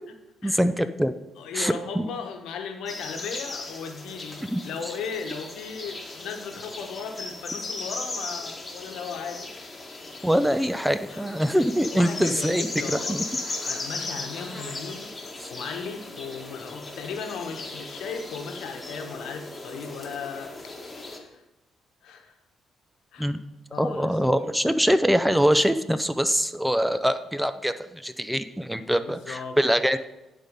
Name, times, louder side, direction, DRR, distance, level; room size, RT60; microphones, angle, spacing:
voice 1, 0.4-1.1 1.5-2.1 4.5-4.6 10.2-13.2 23.2-23.4 23.8-30.0, equal, 5° right, 11 dB, 0.5 m, -24 dB
voice 2, 1.4-9.5 11.1-11.3 11.9-13.2 13.6-15.1 15.5-20.7 21.2-21.4 22.0-22.4 23.1-23.3 23.7-24.4 29.0-29.6, left 5 dB, 85° left, 5 dB, 1.1 m, -36 dB
sound 1, 2.9-21.2, left 2 dB, 25° left, 1.5 m, -37 dB
11.0 x 4.2 x 5.2 m, 0.95 s
cardioid pair, 90°, 0 cm